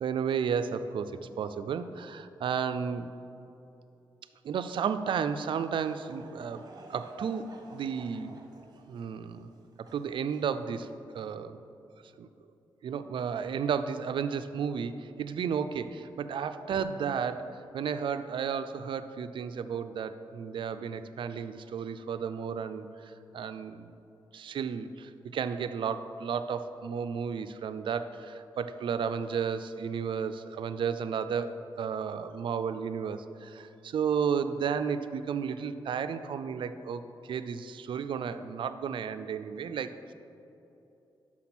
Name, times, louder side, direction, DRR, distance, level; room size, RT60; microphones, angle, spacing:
voice 1, 0.0-3.1 4.4-8.4 8.9-9.5 9.9-10.9 11.1-11.6 12.2-12.3 12.8-23.9 24.3-37.0 37.3-39.9, right 7 dB, 65° right, 11 dB, 0.4 m, -33 dB
Laughter / Crowd, 5.3-11.0, right 2 dB, 45° right, 1.0 m, -52 dB
6.0 x 5.9 x 6.0 m, 2.8 s
cardioid pair, 75°, 9 cm